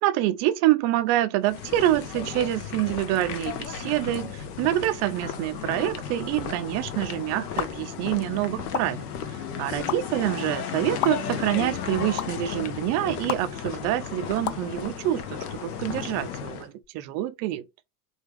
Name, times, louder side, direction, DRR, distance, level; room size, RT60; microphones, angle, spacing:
voice 1, 0.0-9.1 9.6-17.6, right 14 dB, 35° right, 0.4 m, -26 dB
sound 1, 1.4-16.7, left 8 dB, 65° left, 0.8 m, -34 dB
sound 2, 7.6-7.7 8.7-8.8 9.9-10.0 11.0-11.1 12.2-12.3 13.3-13.4 14.4-14.6, left 12 dB, 40° left, 0.4 m, -26 dB
4.4 x 2.4 x 3.1 m
figure-of-eight pair, 70°, 49 cm